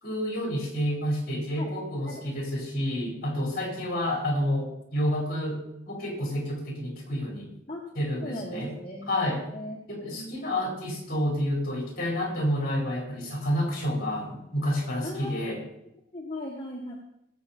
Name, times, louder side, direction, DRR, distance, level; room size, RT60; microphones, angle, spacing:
voice 1, 0.0-7.5 7.9-8.7 9.1-9.4 9.9-15.6, equal, 45° left, -1 dB, 4.6 m, -29 dB
voice 2, 8.2-9.1 9.5-9.8 10.1-10.4 15.0-15.6 16.1-16.9, left 1 dB, 25° left, -2 dB, 1.5 m, -37 dB
18.0 x 8.1 x 4.4 m, 0.81 s
head